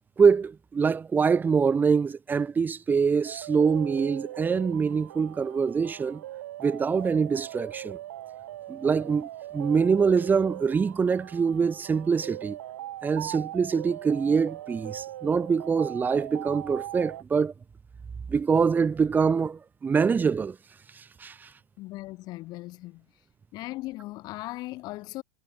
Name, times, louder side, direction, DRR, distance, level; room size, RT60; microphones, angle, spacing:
voice 1, 0.2-6.2 6.6-8.0 8.7-12.6 13.0-17.5 18.3-20.6 20.9-21.5, right 5 dB, 20° right, 1.2 m, -24 dB
sound 1, 3.2-17.2, right 13 dB, 70° right, 2.9 m, -40 dB
voice 2, 21.8-23.1 23.5-25.2, left 19 dB, 45° left, 1.6 m, -38 dB
hypercardioid pair, 90°, 9 cm